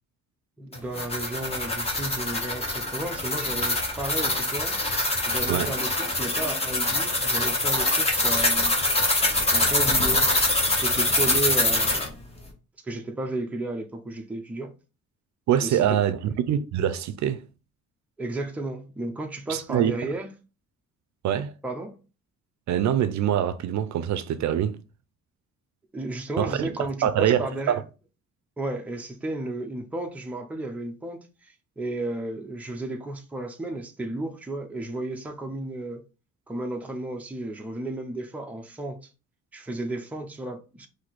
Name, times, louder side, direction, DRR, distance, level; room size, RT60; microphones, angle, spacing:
voice 1, 0.6-4.8 5.3-8.8 9.5-10.3 10.8-12.1 12.8-14.7 15.6-15.8 18.2-20.3 21.6-22.0 25.9-27.8 28.6-36.0 36.5-39.1 39.5-40.9, right 2 dB, 5° right, 0.4 m, -33 dB
sound 1, 0.7-12.1, left 2 dB, 20° left, 0.8 m, -24 dB
voice 2, 15.5-17.4 19.5-19.9 21.2-21.5 22.7-24.8 26.4-26.7 27.0-27.8, right 10 dB, 65° right, 0.5 m, -24 dB
4.1 x 2.7 x 4.5 m
cardioid pair, 180°, 31 cm